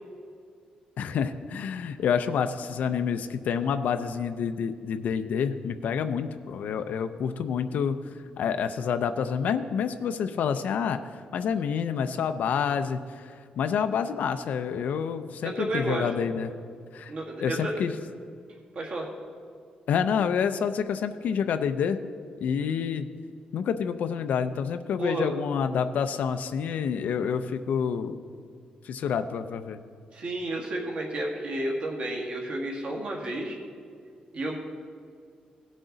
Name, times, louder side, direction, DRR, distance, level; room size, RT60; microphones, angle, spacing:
voice 1, 1.0-8.0 8.4-11.0 11.3-16.5 16.9-17.1 17.4-17.9 19.9-22.0 22.4-23.1 23.5-28.2 28.8-29.8, left 7 dB, 75° left, 8 dB, 0.5 m, -28 dB
voice 2, 15.4-16.1 17.1-17.8 18.7-19.1 25.0-25.4 30.1-33.6 34.3-34.6, right 1 dB, 50° right, 0 dB, 1.9 m, -31 dB
17.0 x 6.3 x 3.9 m, 2.2 s
wide cardioid pair, 145°, 3 cm